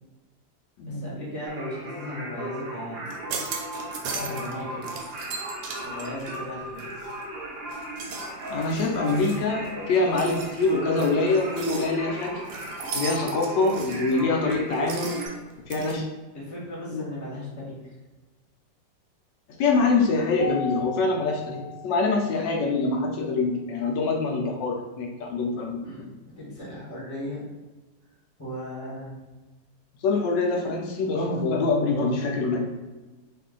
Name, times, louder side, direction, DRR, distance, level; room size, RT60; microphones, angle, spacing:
voice 1, 0.8-3.1 4.3-4.8 5.8-7.1 15.9-16.0 16.3-17.9 25.8-26.0 26.4-27.4 28.4-29.1, left 1 dB, 10° left, -6 dB, 0.9 m, -37 dB
Singing, 1.5-15.3, right 1 dB, 50° right, 0.7 m, -36 dB
sound 1, 3.1-4.5 4.8-7.3 7.7-16.0, right 4 dB, 80° right, 1.2 m, -38 dB
voice 2, 4.1-4.5 8.5-12.3 12.9-15.2 15.7-16.0 16.9-17.0 19.6-26.1 30.0-32.7, left 3 dB, 75° left, 1 dB, 1.2 m, -25 dB
Mallet percussion, 20.4-22.8, left 7 dB, 60° left, 1.2 m, -37 dB
3.1 x 2.6 x 3.7 m, 1.2 s
omnidirectional pair, 2.0 m